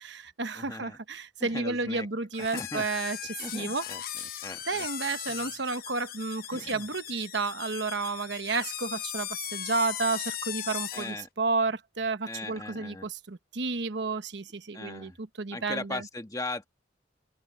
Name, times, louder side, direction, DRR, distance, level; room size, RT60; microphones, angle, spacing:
voice 1, 0.0-3.9 4.7-16.0, right 3 dB, 65° right, 1.1 m, -31 dB
voice 2, 0.5-1.0 1.4-2.1 2.4-2.9 3.4-4.0 4.4-4.9 5.2-5.5 6.5-6.8 10.9-11.3 12.2-13.1 14.7-15.2 15.5-16.7, left 2 dB, 20° left, 1.6 m, -38 dB
sound 1, 2.3-11.2, left 11 dB, 50° left, 0.9 m, -38 dB
head